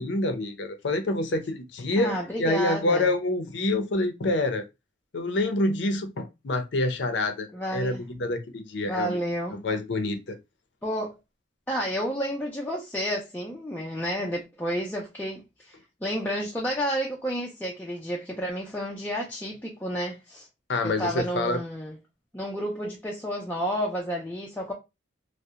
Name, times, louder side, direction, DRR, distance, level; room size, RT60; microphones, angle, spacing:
voice 1, 0.0-4.7 5.1-9.2 9.5-10.4 20.7-21.6, left 2 dB, 70° left, 0.5 m, -27 dB
voice 2, 2.0-3.1 7.5-8.0 8.9-9.6 10.8-11.2 11.7-20.5 20.8-22.0 22.3-24.7, equal, 10° left, 0.4 m, -31 dB
2.7 x 2.0 x 2.3 m
head